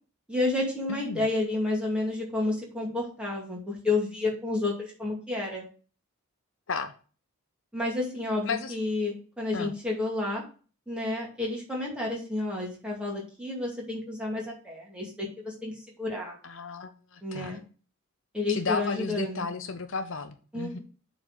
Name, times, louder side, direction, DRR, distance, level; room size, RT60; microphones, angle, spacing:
voice 1, 0.3-5.7 7.7-10.4 10.9-16.3 17.2-17.6 18.3-19.5 20.5-20.8, left 2 dB, 5° right, -3 dB, 2.4 m, -30 dB
voice 2, 0.9-1.3 6.7-6.9 8.5-8.7 9.5-9.7 16.4-17.6 18.5-20.8, left 4 dB, 55° left, 9 dB, 0.6 m, -33 dB
7.6 x 4.0 x 6.4 m, 0.38 s
head